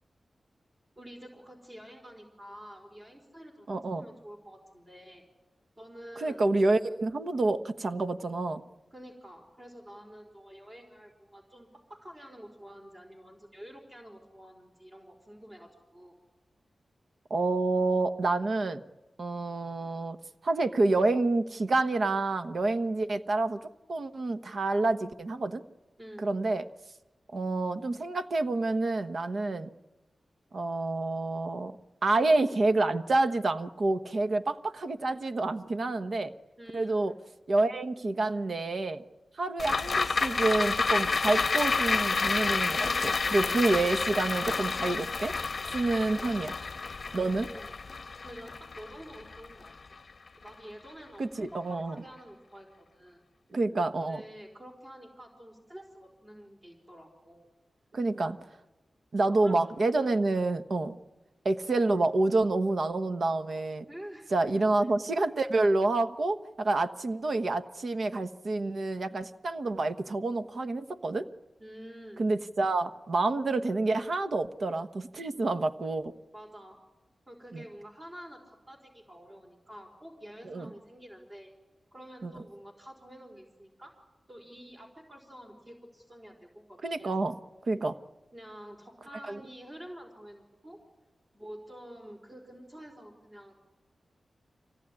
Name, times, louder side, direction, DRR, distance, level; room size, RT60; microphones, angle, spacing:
voice 1, 1.0-5.2 5.8-6.4 8.9-16.2 26.0-26.3 36.6-37.2 47.2-47.7 48.2-50.0 50.4-53.2 54.0-57.5 59.2-59.6 60.0-60.2 63.9-64.9 71.6-72.2 76.3-76.8 77.3-81.5 81.9-83.9 84.3-87.3 88.3-90.8 91.3-93.5, equal, 30° right, 1 dB, 4.6 m, -48 dB
voice 2, 3.7-4.0 6.2-8.6 17.3-18.8 19.2-20.2 20.4-25.6 26.2-26.6 27.3-29.7 30.5-31.7 32.0-36.3 36.7-37.1 37.5-39.0 39.3-45.3 45.7-46.6 47.1-47.5 51.2-52.0 53.5-54.2 57.9-58.4 59.1-61.0 61.4-63.8 64.3-71.3 72.2-76.1 77.5-77.6 80.4-80.7 82.2-82.3 86.8-87.4 87.7-88.0 89.3-89.4, right 2 dB, 60° right, 10 dB, 1.2 m, -28 dB
sound 1, 39.6-50.1 50.5-50.6, left 4 dB, 50° left, 0.7 m, -30 dB
25.0 x 18.0 x 9.9 m, 1.1 s
wide cardioid pair, 85°, 0 cm